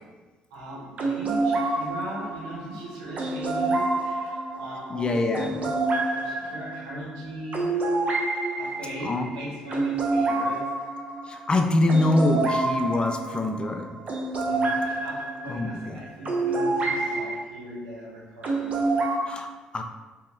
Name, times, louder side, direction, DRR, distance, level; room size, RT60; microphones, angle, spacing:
voice 1, 0.5-7.8 8.6-10.8 14.4-18.8, right 1 dB, 85° right, -5 dB, 0.7 m, -39 dB
sound 1, 1.0-17.3 18.4-19.2, right 2 dB, 45° right, 0.6 m, -28 dB
voice 2, 4.9-5.5 9.0-9.3 11.3-13.9 15.5-16.0 19.2-19.8, left 2 dB, 30° left, 5 dB, 0.3 m, -24 dB
2.8 x 2.7 x 2.4 m, 1.2 s
hypercardioid pair, 55°, 3 cm